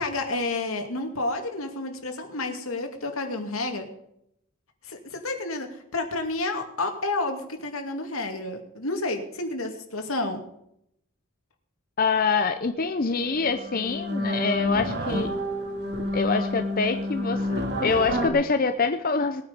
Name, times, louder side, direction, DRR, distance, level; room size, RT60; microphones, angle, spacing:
voice 1, 0.0-3.9 4.8-10.4, left 2 dB, 80° left, 5 dB, 2.4 m, -30 dB
voice 2, 12.0-15.3 16.1-19.4, left 4 dB, 45° left, 8 dB, 0.7 m, -25 dB
sound 1, 12.9-13.0 13.3-18.3, left 1 dB, 55° right, 2.4 m, -29 dB
19.5 x 9.6 x 5.2 m, 0.76 s
head